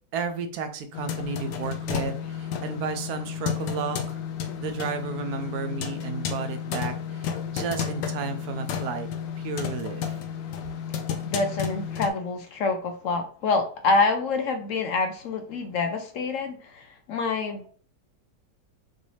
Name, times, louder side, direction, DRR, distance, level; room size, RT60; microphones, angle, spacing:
voice 1, 0.1-4.2 4.6-9.1 9.4-10.2, right 5 dB, 70° right, 8 dB, 1.1 m, -32 dB
sound 1, 0.9-12.1, left 8 dB, 80° left, 1.3 m, -32 dB
voice 2, 10.9-17.7, left 3 dB, 60° left, 5 dB, 0.9 m, -27 dB
6.1 x 2.6 x 3.2 m, 0.43 s
omnidirectional pair, 1.9 m